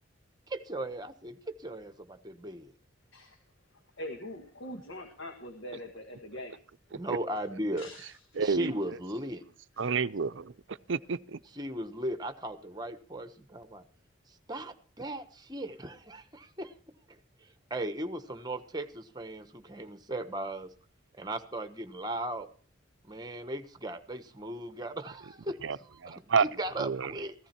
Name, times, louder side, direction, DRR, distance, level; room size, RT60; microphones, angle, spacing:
voice 1, 0.5-2.7 6.9-7.9 8.4-9.4 11.5-13.8 14.3-16.7 17.1-20.7 21.2-22.5 23.1-27.3, right 1 dB, 20° right, 1.2 m, -37 dB
voice 2, 4.0-6.6 7.8-8.4, left 1 dB, 65° left, 1.7 m, -43 dB
voice 3, 8.4-8.7 9.8-10.5 10.9-11.4 25.6-25.8 26.0-26.5 26.8-27.1, right 5 dB, 65° right, 0.6 m, -29 dB
15.5 x 14.0 x 4.4 m
head